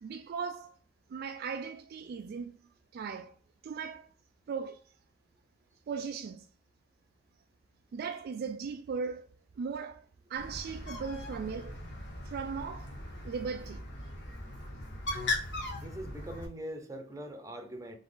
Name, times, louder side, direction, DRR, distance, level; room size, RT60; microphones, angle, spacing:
voice 1, 0.0-0.7 1.1-2.6 2.9-3.3 3.6-4.1 4.5-4.8 5.9-6.5 7.9-9.2 9.6-13.9, right 5 dB, 55° right, 0.3 m, -38 dB
Bird, 10.4-16.5, left 2 dB, 65° left, 1.3 m, -39 dB
voice 2, 15.7-17.9, right 1 dB, 15° right, 0.7 m, -42 dB
3.7 x 3.5 x 3.8 m
head